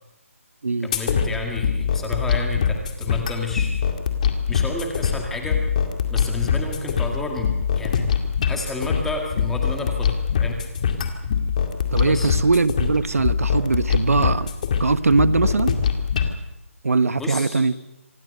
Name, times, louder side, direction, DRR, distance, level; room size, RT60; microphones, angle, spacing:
voice 1, 0.8-3.8 4.5-5.6 6.1-7.5 7.8-8.1 8.5-10.6 12.0-12.3 17.2-17.7, left 2 dB, 5° left, 2 dB, 1.9 m, -31 dB
sound 1, 0.9-16.3, left 7 dB, 30° left, 2.2 m, -23 dB
voice 2, 11.9-14.5 14.8-15.8 16.8-17.7, right 3 dB, 75° right, 14 dB, 1.2 m, -20 dB
26.0 x 18.5 x 6.7 m, 0.94 s
hypercardioid pair, 170°, 8 cm